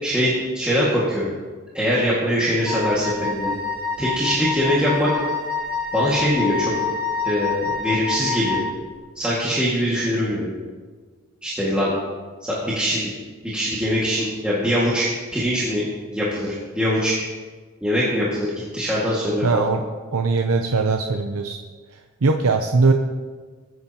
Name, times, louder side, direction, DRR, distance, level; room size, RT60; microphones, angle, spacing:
voice 1, 0.0-1.3 1.7-3.5 4.0-5.1 5.9-6.7 7.2-8.6 9.2-10.5 11.4-11.9 12.4-13.1 13.4-15.1 15.3-15.8 16.1-17.1 17.8-19.7, equal, 5° right, -9 dB, 2.0 m, -22 dB
Wind instrument woodwind instrument, 2.7-8.8, left 5 dB, 45° right, 1.8 m, -27 dB
voice 2, 19.4-19.8 20.1-21.6 22.2-22.9, right 4 dB, 85° right, 4 dB, 0.7 m, -20 dB
21.0 x 9.4 x 2.9 m, 1.4 s
head